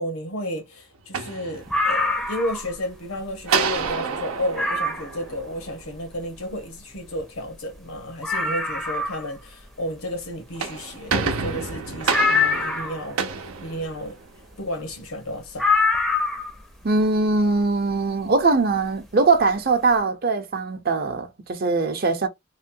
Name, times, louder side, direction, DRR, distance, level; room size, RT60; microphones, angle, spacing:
voice 1, 0.0-14.2 14.6-15.7, left 1 dB, 85° left, 1.1 m, -32 dB
sound 1, 0.9-2.1 3.5-5.9 10.3-14.4, right 5 dB, 85° right, 0.6 m, -29 dB
sound 2, 1.7-2.7 3.2-3.3 3.8-3.9 4.5-5.1 6.9-7.0 7.2-7.3 7.7-7.8 8.2-9.3 12.1-13.0 15.6-16.6 17.9-18.0, left 3 dB, ahead, 0.5 m, -23 dB
voice 2, 16.8-22.3, right 3 dB, 45° right, 0.6 m, -21 dB
3.1 x 2.2 x 2.6 m
head